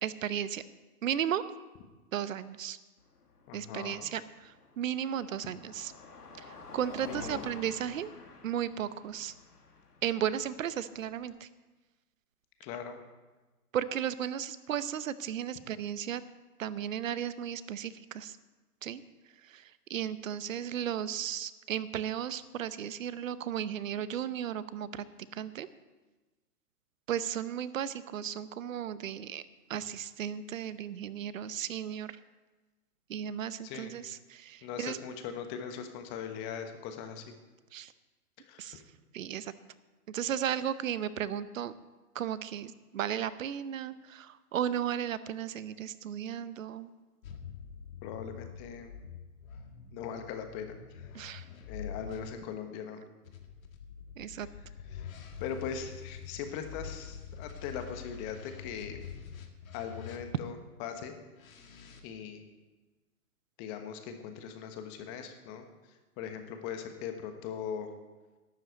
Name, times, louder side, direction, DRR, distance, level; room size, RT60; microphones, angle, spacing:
voice 1, 0.0-0.6 1.0-1.4 2.1-2.8 3.5-5.9 6.4-8.1 8.4-9.3 10.0-11.5 13.7-16.2 16.6-18.4 18.8-19.0 19.4-25.1 25.3-25.7 27.1-32.2 33.1-35.0 37.7-37.9 38.6-38.8 39.1-39.5 40.1-41.7 42.1-46.9 51.1-51.5 54.2-54.5, right 9 dB, 55° right, 16 dB, 0.9 m, -35 dB
Car passing by, 3.0-11.3, left 4 dB, 80° left, 2.6 m, -50 dB
voice 2, 3.5-4.1 7.0-7.4 12.6-13.0 33.6-33.9 34.6-37.3 38.5-38.8 48.0-48.9 49.9-51.1 51.7-53.0 54.9-55.1 55.4-59.0 59.7-61.1 62.0-62.4 63.6-65.6 66.2-67.9, left 7 dB, 25° left, 6 dB, 1.3 m, -40 dB
sound 1, 47.2-52.3 53.2-60.6 61.3-62.0, left 7 dB, 60° left, 2.0 m, -46 dB
12.0 x 8.0 x 8.0 m, 1.2 s
hypercardioid pair, 135°, 46 cm